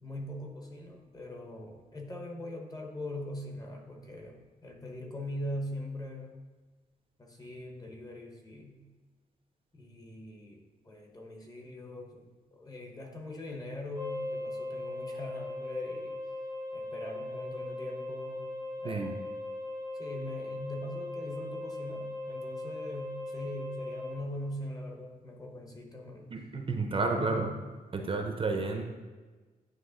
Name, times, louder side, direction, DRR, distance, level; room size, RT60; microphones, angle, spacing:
voice 1, 0.0-6.3 7.2-8.8 9.7-12.2 12.5-16.2 16.7-18.5 18.8-19.1 20.0-26.3 26.9-27.6, left 1 dB, 25° left, 1 dB, 1.0 m, -41 dB
sound 1, 13.9-24.1, left 2 dB, 75° left, 1.9 m, -39 dB
voice 2, 18.8-19.1 26.3-27.5 27.9-28.8, right 3 dB, 35° right, 3 dB, 0.7 m, -31 dB
9.2 x 3.2 x 3.8 m, 1.3 s
wide cardioid pair, 125°, 16 cm